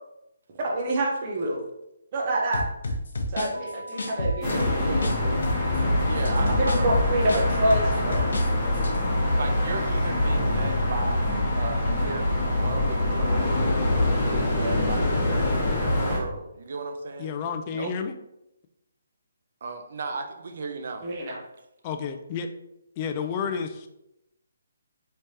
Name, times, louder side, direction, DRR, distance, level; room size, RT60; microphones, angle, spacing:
voice 1, 0.6-1.6 2.1-2.6 3.3-5.3 6.5-8.3 21.0-21.4, right 1 dB, 30° right, -1 dB, 0.8 m, -27 dB
sound 1, 2.5-5.2 5.4-8.5 8.7-9.0, left 1 dB, 75° left, 0.7 m, -29 dB
sound 2, 3.5-13.5, right 1 dB, 85° right, 0.8 m, -41 dB
sound 3, 4.4-16.2, left 1 dB, 10° left, 1.3 m, -24 dB
voice 2, 6.0-6.9 7.3-7.4 9.4-11.3 11.6-17.3 17.7-17.9 19.6-21.1, right 4 dB, 55° right, 6 dB, 0.5 m, -35 dB
voice 3, 17.2-18.1 21.8-22.5 23.0-23.9, left 6 dB, 25° left, 7 dB, 0.3 m, -31 dB
3.3 x 3.2 x 2.8 m, 0.85 s
hypercardioid pair, 165°, 0 cm